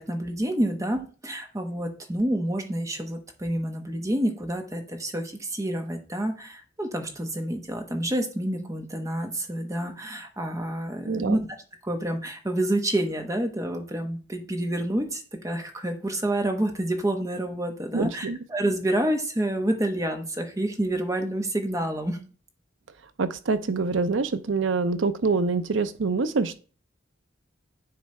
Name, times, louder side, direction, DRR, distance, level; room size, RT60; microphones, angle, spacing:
voice 1, 0.0-11.4 11.8-22.2, right 1 dB, 15° right, 5 dB, 1.0 m, -28 dB
voice 2, 11.1-11.4 17.9-18.4 23.2-26.6, right 4 dB, 80° right, 12 dB, 0.6 m, -25 dB
9.5 x 3.2 x 4.3 m, 0.38 s
head